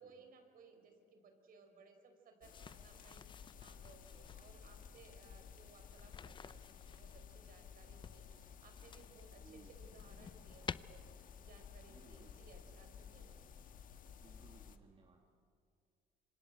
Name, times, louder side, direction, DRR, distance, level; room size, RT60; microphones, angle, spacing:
voice 1, 0.0-13.4, right 4 dB, 60° right, 6 dB, 5.2 m, -62 dB
sound 1, 2.4-14.8, left 7 dB, 55° left, 1.6 m, -55 dB
sound 2, 2.5-4.5 5.9-7.2 8.0-9.3 9.7-10.8, left 6 dB, 30° left, 0.6 m, -51 dB
voice 2, 9.4-9.7 11.9-12.3 14.2-15.3, right 4 dB, 35° right, 1 dB, 2.6 m, -62 dB
26.5 x 25.5 x 8.0 m, 2.3 s
cardioid pair, 110°, 17 cm